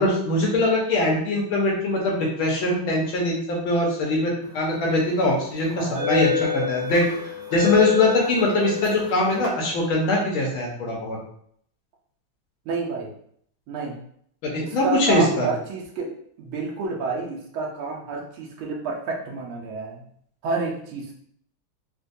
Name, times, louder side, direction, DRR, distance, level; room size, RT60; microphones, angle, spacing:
voice 1, 0.0-7.1 7.5-11.2 14.4-15.5, left 2 dB, 80° left, -2 dB, 1.7 m, -22 dB
sound 1, 4.7-4.9 5.7-9.5, left 8 dB, 50° right, 1.5 m, -28 dB
voice 2, 5.8-6.5 12.6-13.1 13.7-14.0 14.6-16.1 16.4-20.0 20.4-21.1, right 4 dB, 85° right, -1 dB, 1.6 m, -29 dB
4.4 x 2.2 x 2.6 m, 0.65 s
omnidirectional pair, 2.2 m